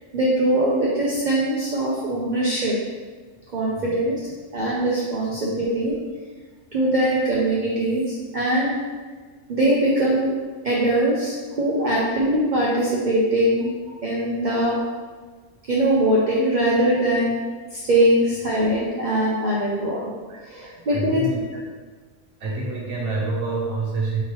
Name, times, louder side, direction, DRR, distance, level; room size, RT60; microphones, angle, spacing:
voice 1, 0.1-2.8 3.5-4.2 4.5-5.9 6.7-8.8 9.5-10.4 10.6-13.7 14.0-14.8 15.7-20.0 20.4-21.2, right 1 dB, 50° right, -5 dB, 0.6 m, -21 dB
voice 2, 20.3-21.6 22.4-24.2, right 3 dB, 70° right, -3 dB, 1.2 m, -28 dB
4.8 x 3.0 x 3.0 m, 1.4 s
omnidirectional pair, 1.3 m